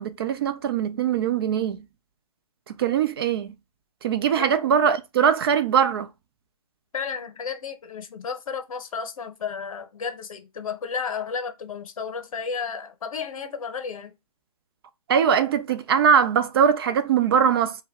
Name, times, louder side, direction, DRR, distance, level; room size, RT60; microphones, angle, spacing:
voice 1, 0.0-1.8 2.8-3.5 4.0-6.1 15.1-17.7, right 7 dB, 40° right, 0.4 m, -21 dB
voice 2, 4.1-4.5 6.9-14.1, left 6 dB, 60° left, 0.8 m, -33 dB
2.4 x 2.2 x 3.5 m
figure-of-eight pair, 135°, 20 cm